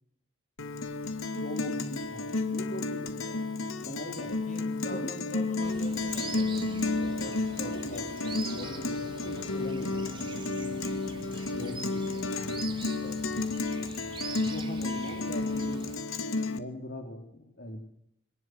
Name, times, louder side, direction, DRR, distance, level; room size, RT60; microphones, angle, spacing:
Guitar, 0.6-16.6, left 3 dB, 90° left, 2.4 m, -32 dB
voice 1, 1.3-3.5 3.8-4.3 4.9-5.1 7.6-10.6 11.5-12.4 14.3-15.9 16.5-17.8, left 1 dB, 55° left, 4 dB, 3.3 m, -41 dB
voice 2, 4.1-8.3 12.8-13.3, left 1 dB, 35° left, 6 dB, 6.0 m, -45 dB
sound 1, 5.6-16.0, right 4 dB, 25° right, 3.1 m, -44 dB
23.5 x 19.0 x 7.9 m, 0.71 s
head